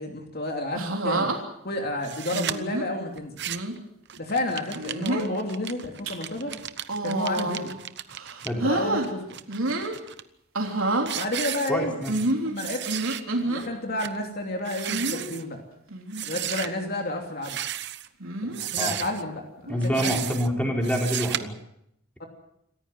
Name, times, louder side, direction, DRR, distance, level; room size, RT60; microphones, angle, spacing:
voice 1, 0.0-1.4 1.6-3.4 4.2-6.5 7.0-7.7 8.4-9.4 11.1-12.0 12.4-12.8 13.4-15.6 16.2-17.6 18.4-20.2 22.2-22.3, left 1 dB, 45° left, 3 dB, 2.9 m, -31 dB
sound 1, 0.8-1.4 2.3-2.9 3.5-3.7 4.7-5.3 5.8-6.1 6.8-7.8 8.1-9.1 9.5-10.0 10.5-11.1 12.1-13.6 14.9-15.3 15.9-16.2 16.5-16.6 18.2-18.6 19.7-20.0, right 2 dB, 75° right, 3.5 m, -28 dB
sound 2, 2.0-2.6 3.2-3.8 4.1-8.5 9.0-10.2 10.7-10.8 11.1-12.3 12.6-13.2 13.6-13.7 14.0-14.2 14.6-15.4 16.1-16.7 17.4-18.1 18.5-19.2 19.8-20.5 20.8-21.4, right 12 dB, 55° right, 0.9 m, -34 dB
voice 2, 11.7-12.1 18.8-18.9 19.7-21.5, equal, 5° left, 1 dB, 4.0 m, -26 dB
27.0 x 15.0 x 7.7 m, 0.75 s
head